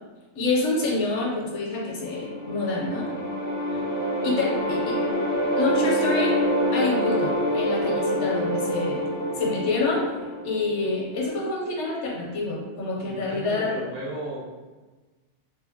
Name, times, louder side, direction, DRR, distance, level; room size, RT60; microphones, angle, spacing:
voice 1, 0.3-3.1 4.2-5.0 5.5-6.4 6.7-9.0 9.4-10.1 10.4-13.7, left 3 dB, 75° left, -2 dB, 1.0 m, -27 dB
sound 1, 2.0-11.1, equal, 60° left, 0.6 m, -26 dB
voice 2, 13.0-14.5, right 1 dB, 70° right, -4 dB, 1.1 m, -36 dB
2.8 x 2.8 x 2.6 m, 1.3 s
omnidirectional pair, 1.2 m